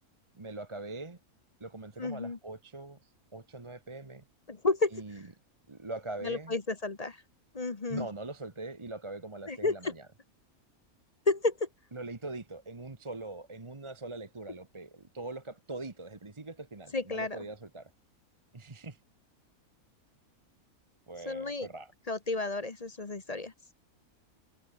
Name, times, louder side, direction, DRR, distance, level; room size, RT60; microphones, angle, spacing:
voice 1, 0.3-1.2 1.6-4.2 4.9-5.3 5.7-6.6 7.9-10.1 11.9-17.9 18.5-19.0 21.1-21.9, right 2 dB, 20° right, 1.2 m, -42 dB
voice 2, 2.0-2.4 4.5-5.0 6.2-7.2 7.5-8.1 9.5-9.9 11.3-11.7 16.9-17.4 21.3-21.7 22.1-23.5, left 3 dB, 30° left, 1.1 m, -31 dB
omnidirectional pair, 1.6 m